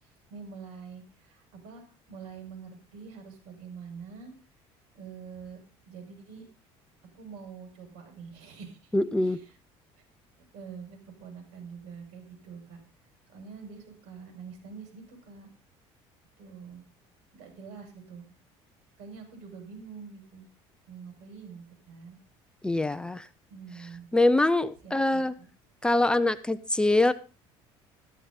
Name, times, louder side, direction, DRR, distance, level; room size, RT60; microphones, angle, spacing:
voice 1, 0.0-4.3 4.9-5.6 5.9-6.5 7.0-8.9 9.2-9.6 10.5-12.8 13.3-15.5 16.4-16.8 17.3-18.3 19.0-20.4 20.9-22.2 23.5-24.1 24.8-25.5, right 6 dB, 75° right, 4 dB, 6.6 m, -45 dB
voice 2, 8.9-9.4 22.6-23.3 24.1-25.3 25.8-27.1, left 2 dB, 10° left, 13 dB, 0.6 m, -24 dB
13.5 x 13.0 x 4.1 m, 0.32 s
cardioid pair, 140°, 11 cm